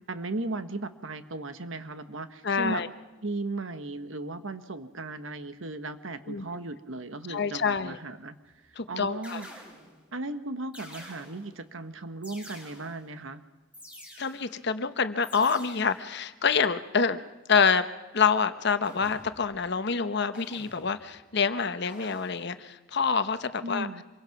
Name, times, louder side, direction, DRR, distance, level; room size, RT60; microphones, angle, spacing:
voice 1, 0.1-2.8 3.2-8.3 8.6-9.7 10.1-13.4 23.6-24.0, right 2 dB, 75° right, 10 dB, 1.3 m, -36 dB
voice 2, 2.4-2.9 6.3-6.4 7.3-8.0 8.8-9.4 14.2-17.2 17.5-17.9 18.1-23.9, left 5 dB, 60° left, 11 dB, 1.0 m, -26 dB
sound 1, 8.4-8.7 9.2-10.1 10.7-11.6 12.2-13.1 13.7-14.6 15.2-16.1 18.8-19.6 20.3-21.2 21.8-22.6, left 1 dB, 5° right, 4.4 m, -49 dB
26.0 x 22.5 x 6.0 m, 1.2 s
head